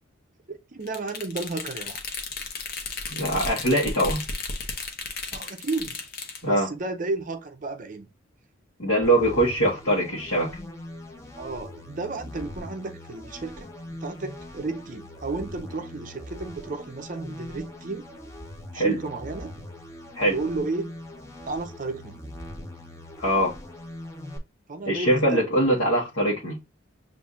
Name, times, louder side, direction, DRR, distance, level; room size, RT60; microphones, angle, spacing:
voice 1, 0.5-2.0 5.3-6.0 6.4-8.1 11.4-13.7 14.0-18.0 18.7-19.7 20.3-21.0 21.5-22.2 24.7-25.5, right 3 dB, 40° right, 0.5 m, -33 dB
sound 1, 0.9-6.4, left 4 dB, 50° left, 0.7 m, -34 dB
voice 2, 3.1-4.2 6.4-6.7 8.8-10.5 18.7-19.0 20.1-20.3 23.2-23.6 24.9-26.5, right 1 dB, 70° left, 1.1 m, -22 dB
sound 2, 9.0-24.4, left 1 dB, 15° left, 0.6 m, -41 dB
6.9 x 2.5 x 2.4 m
head